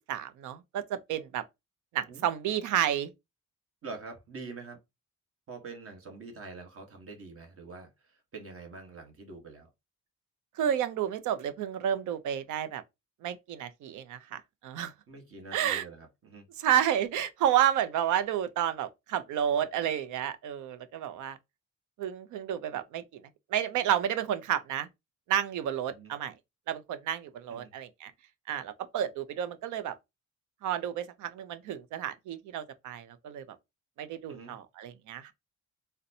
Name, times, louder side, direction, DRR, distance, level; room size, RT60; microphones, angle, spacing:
voice 1, 0.1-1.4 1.9-3.1 10.6-12.8 13.2-14.9 15.5-15.8 16.6-21.4 22.0-23.2 23.5-24.9 25.3-26.3 26.7-28.1 28.5-29.9 30.6-33.4 34.0-35.3, right 10 dB, 80° right, 0.6 m, -31 dB
voice 2, 3.8-4.8 5.5-9.7 15.1-16.5 25.9-26.1 27.5-27.7 34.3-34.6, right 3 dB, 50° right, 1.2 m, -45 dB
3.9 x 2.2 x 2.7 m
cardioid pair, 90°, 30 cm